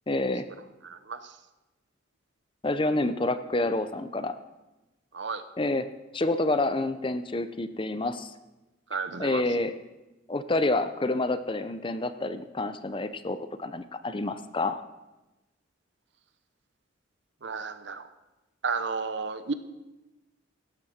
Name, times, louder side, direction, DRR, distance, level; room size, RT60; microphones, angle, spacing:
voice 1, 0.1-0.5 2.6-4.3 5.6-5.9 6.1-8.3 8.9-9.7 10.3-14.8, left 2 dB, 25° left, 11 dB, 0.6 m, -28 dB
voice 2, 8.9-9.4 17.4-18.0 18.6-19.5, right 5 dB, 60° right, 11 dB, 0.8 m, -32 dB
16.5 x 12.0 x 4.3 m, 1.0 s
head